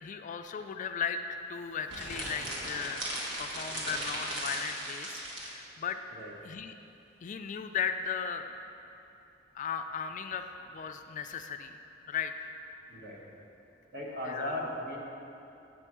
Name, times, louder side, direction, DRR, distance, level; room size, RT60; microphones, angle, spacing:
voice 1, 0.0-1.2 1.5-3.1 3.4-6.0 6.4-6.7 7.2-8.5 9.5-10.5 10.7-11.8 12.1-12.5 14.3-14.6, left 7 dB, 40° left, 8 dB, 0.3 m, -36 dB
sound 1, 1.9-5.5, right 1 dB, 75° right, 1.4 m, -37 dB
voice 2, 12.9-13.5 13.9-15.0, left 1 dB, 55° right, -2 dB, 1.3 m, -37 dB
7.6 x 4.4 x 6.1 m, 2.9 s
head